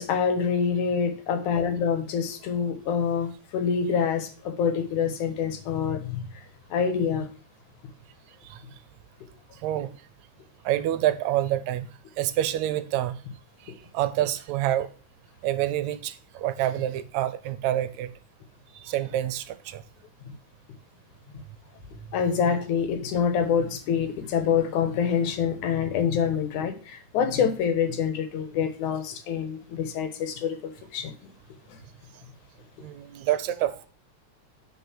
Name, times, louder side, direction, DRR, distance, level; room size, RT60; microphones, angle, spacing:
voice 1, 0.0-6.2 6.7-7.3 13.7-13.8 22.1-31.1, left 7 dB, 90° left, 2.8 m, -26 dB
voice 2, 10.6-11.9 12.2-13.2 13.6-14.9 15.4-18.1 18.7-19.8 32.8-33.9, right 13 dB, 75° right, 1.9 m, -27 dB
9.4 x 5.3 x 6.2 m
omnidirectional pair, 3.4 m